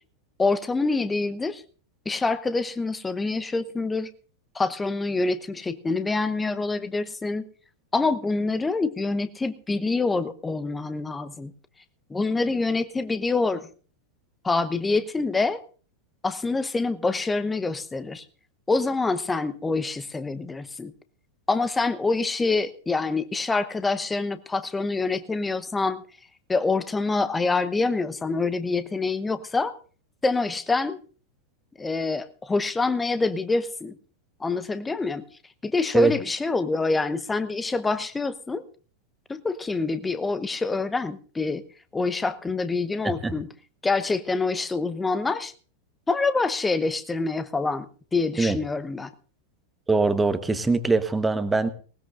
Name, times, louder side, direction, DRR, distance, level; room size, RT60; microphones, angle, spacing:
voice 1, 0.4-1.6 2.0-4.1 4.5-7.5 7.9-11.5 12.1-13.7 14.4-15.6 16.2-18.2 18.7-20.9 21.5-26.0 26.5-29.8 30.2-31.0 31.8-34.0 34.4-35.2 35.6-38.7 39.3-41.6 41.9-43.5 43.8-45.5 46.1-49.1, left 3 dB, 10° left, 13 dB, 0.9 m, -26 dB
voice 2, 49.9-51.7, right 3 dB, 10° right, 11 dB, 1.1 m, -22 dB
19.5 x 19.0 x 2.5 m, 0.41 s
figure-of-eight pair, 90°, 0 cm